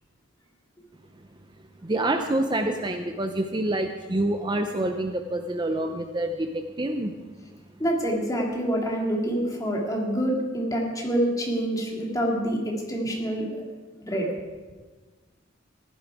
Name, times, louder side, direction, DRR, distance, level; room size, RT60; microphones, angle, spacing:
voice 1, 1.8-7.1, right 1 dB, 25° right, 6 dB, 0.6 m, -27 dB
voice 2, 7.8-13.5 14.0-14.3, right 1 dB, 20° left, -1 dB, 2.3 m, -26 dB
15.5 x 11.0 x 4.8 m, 1.4 s
head